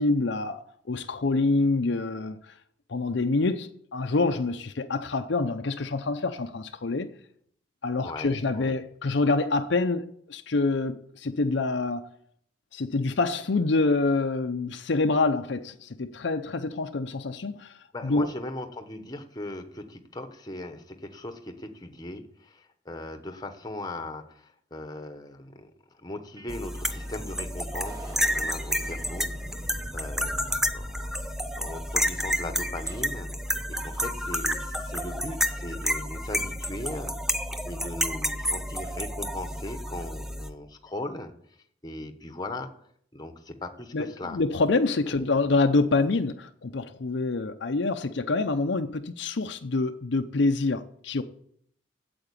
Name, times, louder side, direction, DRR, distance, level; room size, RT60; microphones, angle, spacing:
voice 1, 0.0-2.4 2.9-7.1 7.8-12.0 12.7-17.7 18.0-18.3 43.9-51.2, left 3 dB, 60° left, 0.6 m, -26 dB
voice 2, 8.0-8.7 17.9-25.7 26.0-29.3 29.6-33.3 33.7-37.2 37.7-41.3 41.8-42.7 43.1-44.4 45.1-45.4, left 1 dB, 20° left, 1.0 m, -39 dB
sound 1, 26.4-26.5 26.8-33.0, equal, 20° right, 1.8 m, -45 dB
sound 2, 26.5-40.5, equal, ahead, 0.5 m, -30 dB
8.8 x 7.9 x 8.3 m
head